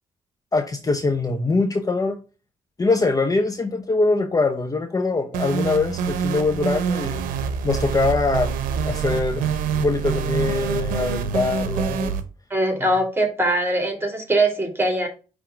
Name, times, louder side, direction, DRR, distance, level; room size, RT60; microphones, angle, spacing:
voice 1, 0.5-2.2 2.8-7.2 7.6-8.6 8.8-9.4 9.8-12.1, left 3 dB, 25° left, 0.8 m, -23 dB
sound 1, 5.3-12.2, right 6 dB, 85° right, 0.7 m, -26 dB
voice 2, 12.5-15.1, right 1 dB, 15° right, 2.4 m, -21 dB
5.8 x 3.6 x 5.0 m
cardioid pair, 70°, 14 cm